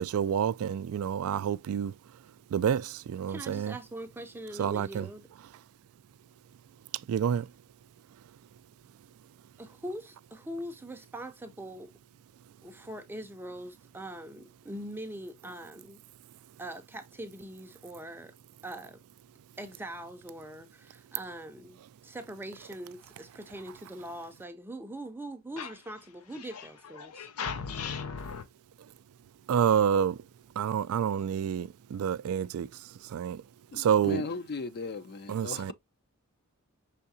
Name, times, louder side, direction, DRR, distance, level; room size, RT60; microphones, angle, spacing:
voice 1, 0.0-1.9 2.5-3.7 4.6-5.1 7.1-7.5 29.5-30.2 30.6-32.7 33.1-33.4 33.7-34.2 35.3-35.7, right 8 dB, 70° right, 0.3 m, -28 dB
voice 2, 3.3-5.3 9.6-11.9 12.6-16.0 16.6-18.3 18.6-19.0 19.6-27.3, right 1 dB, 10° right, 0.5 m, -42 dB
voice 3, 26.3-28.5, left 6 dB, 85° left, 0.6 m, -38 dB
voice 4, 33.7-35.7, left 4 dB, 50° left, 0.5 m, -37 dB
5.7 x 3.5 x 2.6 m
head